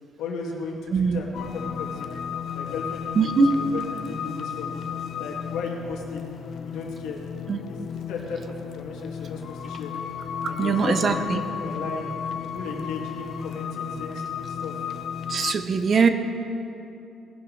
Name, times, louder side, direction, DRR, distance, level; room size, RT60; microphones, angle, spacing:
voice 1, 0.2-2.1 2.5-4.8 5.2-6.3 6.6-7.2 7.6-9.9 10.5-12.1 12.4-14.7, left 4 dB, 85° left, 0 dB, 2.0 m, -35 dB
sound 1, 1.3-15.5, left 7 dB, 45° left, 0.4 m, -34 dB
voice 2, 3.2-3.5 7.5-7.6 10.6-11.4 15.3-16.1, right 5 dB, 30° right, 8 dB, 0.6 m, -21 dB
19.0 x 11.0 x 3.2 m, 2.8 s
cardioid pair, 175°, 0 cm